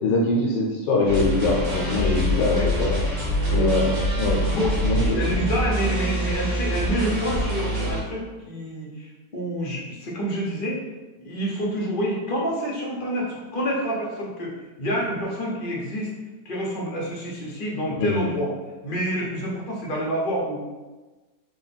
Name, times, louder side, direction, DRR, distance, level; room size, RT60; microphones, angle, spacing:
voice 1, 0.0-2.9 3.5-5.7 18.0-18.2, left 2 dB, 85° left, -3 dB, 1.3 m, -24 dB
sound 1, 1.1-8.0, equal, 55° right, 1.4 m, -25 dB
voice 2, 2.2-2.7 3.4-3.6 3.9-4.1 4.5-4.7 5.1-10.8 11.2-16.1 16.4-18.5 18.8-20.6, equal, 50° left, -3 dB, 0.6 m, -28 dB
3.7 x 2.2 x 4.1 m, 1.2 s
omnidirectional pair, 1.9 m